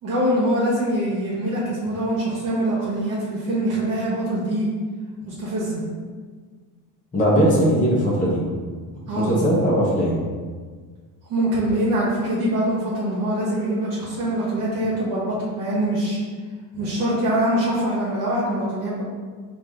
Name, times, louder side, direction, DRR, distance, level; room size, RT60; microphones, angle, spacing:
voice 1, 0.0-4.7 5.2-5.8 9.1-9.3 11.3-16.2 16.7-19.0, right 1 dB, 50° right, -7 dB, 1.2 m, -23 dB
voice 2, 7.1-8.4 9.2-10.2, equal, 20° left, -6 dB, 0.9 m, -19 dB
4.6 x 2.7 x 3.6 m, 1.5 s
cardioid pair, 125°, 41 cm